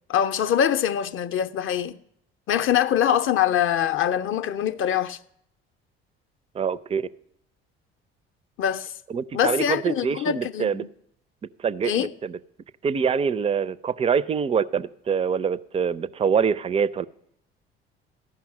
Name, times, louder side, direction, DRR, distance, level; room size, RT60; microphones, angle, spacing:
voice 1, 0.1-2.0 2.5-5.2 8.6-8.9 9.3-10.9 11.8-12.1, left 9 dB, 40° left, 0.6 m, -23 dB
voice 2, 6.5-7.1 9.1-10.8 11.6-12.4 12.8-17.1, right 6 dB, 20° right, 0.4 m, -25 dB
14.5 x 5.7 x 7.3 m
figure-of-eight pair, 55°, 31 cm